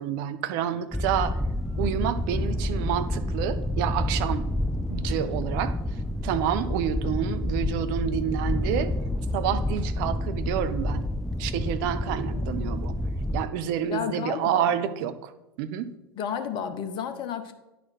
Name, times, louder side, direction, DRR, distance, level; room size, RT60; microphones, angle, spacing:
voice 1, 0.0-1.4 1.8-4.5 4.9-5.7 6.2-8.9 9.3-11.1 11.4-12.9 13.3-15.3 15.6-15.9, right 9 dB, 50° right, 11 dB, 0.6 m, -28 dB
sound 1, 0.9-13.5, left 1 dB, 5° left, 0.3 m, -29 dB
voice 2, 13.9-14.7 16.2-17.5, left 8 dB, 35° left, 8 dB, 0.9 m, -32 dB
9.9 x 4.2 x 5.9 m, 0.95 s
figure-of-eight pair, 85°, 13 cm